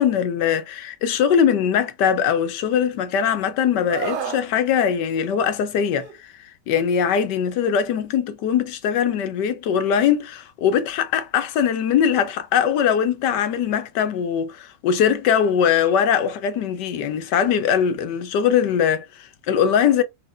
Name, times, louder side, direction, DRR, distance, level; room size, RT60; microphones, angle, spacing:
voice 1, 0.0-20.0, left 8 dB, 75° left, 1.3 m, -21 dB
Screaming, 3.9-4.4 5.9-6.1, right 6 dB, 70° right, 1.4 m, -29 dB
4.2 x 3.4 x 2.4 m
omnidirectional pair, 1.9 m